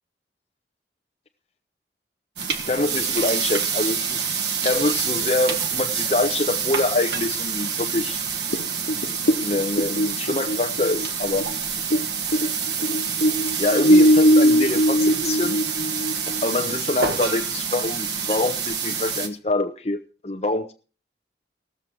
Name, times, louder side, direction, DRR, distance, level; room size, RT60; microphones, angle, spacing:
sound 1, 2.4-19.3, right 6 dB, 75° right, 1.6 m, -27 dB
voice 1, 2.5-4.3 4.6-8.2 9.4-11.5 13.6-15.6 16.2-20.7, left 2 dB, 35° left, 5 dB, 0.7 m, -25 dB
sound 2, 8.5-12.1 12.3-16.4, equal, 65° left, 0.8 m, -19 dB
18.5 x 7.4 x 4.6 m, 0.35 s
head